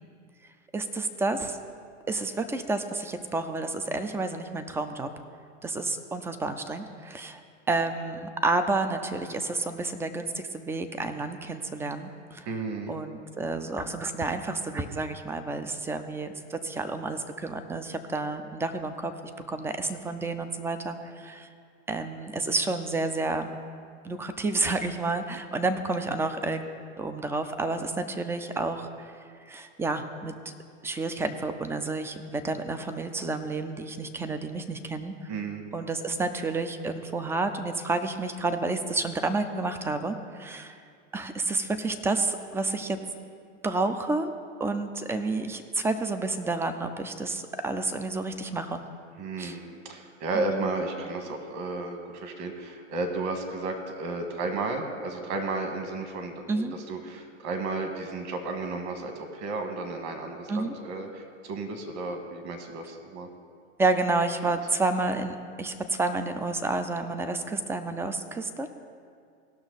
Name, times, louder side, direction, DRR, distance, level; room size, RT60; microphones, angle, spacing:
voice 1, 0.7-1.6 2.1-5.1 5.6-7.4 7.7-12.5 12.9-19.1 19.5-21.5 21.9-23.5 24.0-26.6 27.0-29.1 29.5-30.3 30.8-35.1 35.7-40.7 41.1-43.0 43.6-44.3 44.6-48.8 49.4-49.6 50.3-50.6 56.5-56.7 60.5-60.7 63.8-68.7, right 3 dB, 5° right, 9 dB, 0.3 m, -30 dB
voice 2, 12.5-12.9 35.3-35.6 49.2-63.3 64.4-64.6, right 3 dB, 45° right, 4 dB, 1.7 m, -33 dB
17.0 x 6.1 x 4.0 m, 2.2 s
hypercardioid pair, 105°, 38 cm